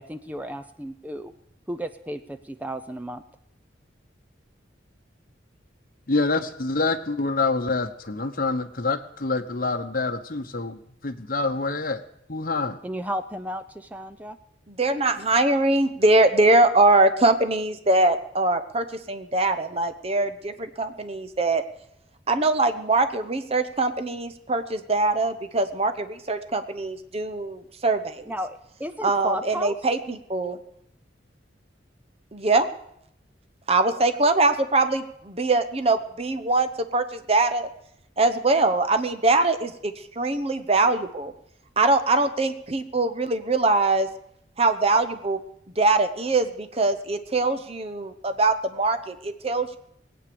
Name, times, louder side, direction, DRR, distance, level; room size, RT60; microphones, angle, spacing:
voice 1, 0.0-1.3 1.7-3.2 12.8-14.4 28.3-29.7, equal, 10° right, 10 dB, 0.5 m, -33 dB
voice 2, 6.1-12.0 12.3-12.8, left 3 dB, 50° left, 7 dB, 1.1 m, -26 dB
voice 3, 14.7-21.6 22.3-28.2 29.0-30.6 32.3-32.7 33.7-37.7 38.2-41.3 41.8-44.1 44.6-45.4 45.8-49.8, right 2 dB, 30° right, 10 dB, 0.9 m, -22 dB
20.0 x 8.9 x 6.9 m, 0.73 s
head